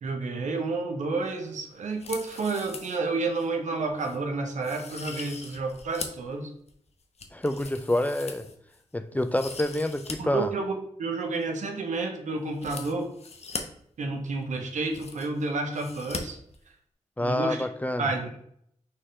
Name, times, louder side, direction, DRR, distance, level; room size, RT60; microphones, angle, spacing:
voice 1, 0.0-6.5 10.2-13.1 14.0-16.4 17.2-17.6 18.0-18.4, right 3 dB, 85° right, 4 dB, 0.7 m, -30 dB
sound 1, 1.9-3.0 3.4-3.5 4.0-4.2 4.6-6.3 6.7-8.8 9.2-10.2 10.4-10.5 12.5-13.6 14.4-14.5 14.7-15.4 15.7-16.2 16.5-16.6, left 4 dB, 60° left, 0.7 m, -40 dB
voice 2, 7.3-8.5 8.9-10.5 17.2-18.1, left 1 dB, 15° left, 9 dB, 0.4 m, -27 dB
4.2 x 3.6 x 3.2 m, 0.69 s
cardioid pair, 45°, 12 cm